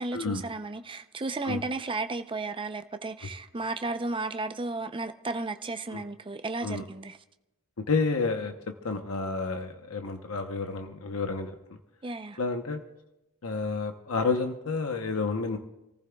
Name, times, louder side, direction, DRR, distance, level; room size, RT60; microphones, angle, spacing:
voice 1, 0.0-7.2 12.0-12.4, right 3 dB, 25° right, 8 dB, 0.6 m, -34 dB
voice 2, 7.9-8.5 8.8-11.5 12.4-12.8 13.4-15.6, left 4 dB, 80° left, 5 dB, 0.9 m, -30 dB
28.0 x 15.0 x 2.3 m, 0.94 s
head